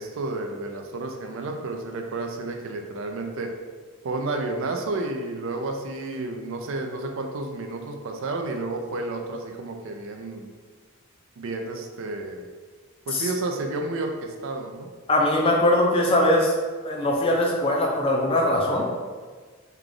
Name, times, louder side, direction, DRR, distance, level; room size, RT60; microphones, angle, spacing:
voice 1, 0.0-3.5 4.0-10.5 11.4-12.5 13.1-14.9, right 2 dB, 65° right, 4 dB, 0.4 m, -31 dB
voice 2, 15.1-16.5 16.8-18.9, left 1 dB, 25° left, -1 dB, 0.4 m, -21 dB
3.3 x 2.3 x 3.7 m, 1.5 s
head